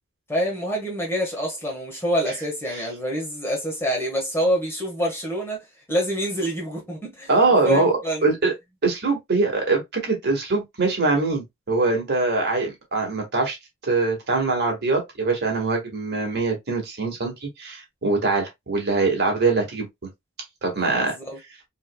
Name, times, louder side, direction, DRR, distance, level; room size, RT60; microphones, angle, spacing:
voice 1, 0.3-5.6 5.9-7.3 7.6-8.3 20.9-21.4, equal, 10° left, 1.4 m, -26 dB
voice 2, 7.3-7.9 8.2-8.5 8.8-13.6 13.8-19.9 20.6-21.2, right 3 dB, 55° right, 1.6 m, -23 dB
4.3 x 3.0 x 2.2 m
head